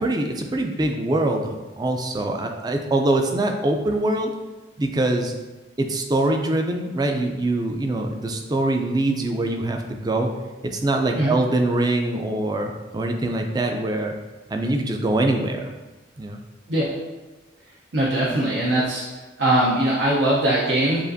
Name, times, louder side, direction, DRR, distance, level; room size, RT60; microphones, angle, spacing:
voice 1, 0.0-4.3 4.8-5.3 5.8-10.3 10.6-14.1 14.5-15.7 16.2-16.4, right 2 dB, 20° right, 3 dB, 0.4 m, -23 dB
voice 2, 17.9-19.0 19.4-21.0, right 1 dB, 75° right, -6 dB, 0.7 m, -21 dB
7.1 x 2.5 x 2.6 m, 1.2 s
head